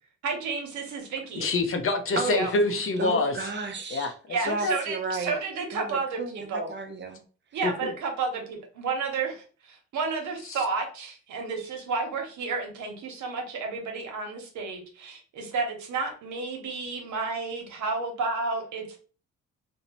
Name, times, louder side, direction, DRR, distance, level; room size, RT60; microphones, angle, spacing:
voice 1, 0.2-1.5 2.2-2.5 4.3-6.7 7.5-19.0, right 4 dB, 75° right, 2 dB, 0.9 m, -31 dB
voice 2, 1.4-3.3 3.9-4.1 4.4-4.8 7.6-7.9, left 2 dB, 45° left, 6 dB, 0.6 m, -26 dB
voice 3, 2.2-2.5 3.0-4.1 4.4-5.4 5.7-7.2, right 3 dB, 40° right, 5 dB, 0.6 m, -33 dB
2.6 x 2.1 x 2.9 m, 0.38 s
cardioid pair, 90°, 30 cm